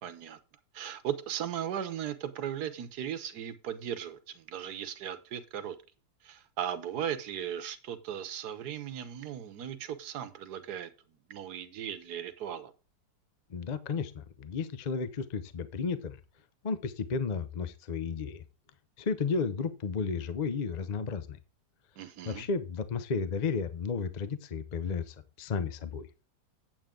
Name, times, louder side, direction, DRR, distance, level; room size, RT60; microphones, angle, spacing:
voice 1, 0.0-0.4 0.7-5.8 6.2-10.9 11.3-12.7 22.0-22.5, right 9 dB, 70° right, 10 dB, 1.5 m, -37 dB
voice 2, 13.5-16.2 16.6-18.4 19.0-21.4 22.3-26.1, left 5 dB, 40° left, 12 dB, 0.6 m, -33 dB
9.0 x 8.0 x 3.7 m, 0.32 s
omnidirectional pair, 1.8 m